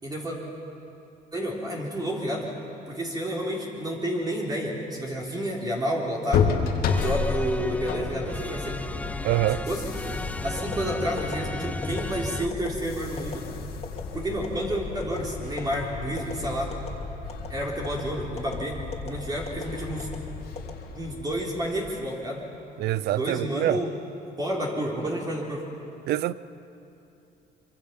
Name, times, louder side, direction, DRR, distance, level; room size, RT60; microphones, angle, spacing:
voice 1, 0.0-0.4 1.3-2.5 2.9-6.6 6.9-8.8 9.7-9.9 10.4-13.4 14.1-16.7 17.5-18.8 19.0-20.1 21.0-22.4 23.1-23.9 24.4-25.7, equal, 25° right, 3.6 m, -30 dB
sound 1, 6.3-22.0, left 5 dB, 65° left, 2.2 m, -32 dB
sound 2, 6.9-12.5, left 2 dB, 10° left, 0.5 m, -35 dB
voice 2, 9.2-9.7 22.8-23.8 26.1-26.3, right 15 dB, 75° right, 0.6 m, -25 dB
sound 3, 10.6-10.8 11.2-11.4 11.8-12.1 12.5-12.7 13.2-13.4 13.8-14.0 14.4-14.6 15.0-15.2 15.6-15.8 16.2-16.3 16.7-17.0 17.3-17.5 17.8-18.0 18.4-18.6 18.9-19.1 19.5-19.6 20.0-20.2 20.6-21.2 21.6-21.9, left 5 dB, 40° left, 2.7 m, -37 dB
25.0 x 24.5 x 5.8 m
cardioid pair, 110°, 17 cm